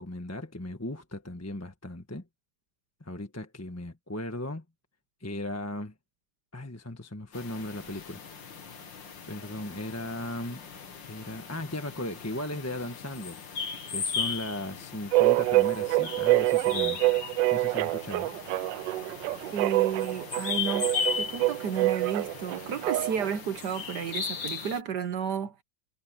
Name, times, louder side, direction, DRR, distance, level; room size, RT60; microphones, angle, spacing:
voice 1, 0.0-2.2 3.0-4.6 5.2-5.9 6.5-8.2 9.3-10.6 11.1-13.6 13.9-17.0 17.5-18.3, left 1 dB, 10° left, 1.3 m, -37 dB
sound 1, 7.3-24.8, left 6 dB, 90° left, 2.7 m, -37 dB
sound 2, 15.1-23.3, right 18 dB, 85° right, 1.3 m, -26 dB
voice 2, 19.5-20.9 21.2-25.5, right 7 dB, 65° right, 1.6 m, -32 dB
omnidirectional pair, 2.0 m